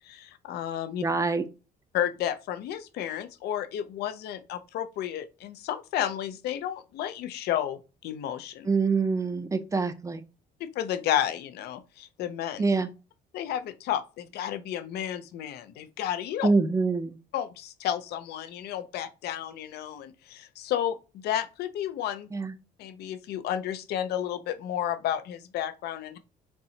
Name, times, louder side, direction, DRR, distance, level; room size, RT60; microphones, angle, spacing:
voice 1, 0.0-1.0 1.9-8.7 10.6-12.6 13.3-16.5 17.3-22.3 22.8-26.2, left 11 dB, 75° left, 0.6 m, -32 dB
voice 2, 1.0-1.4 8.7-10.2 12.6-12.9 16.4-17.2 22.3-22.5, right 4 dB, 20° right, 0.5 m, -25 dB
4.6 x 2.8 x 2.8 m
cardioid pair, 110°, 17 cm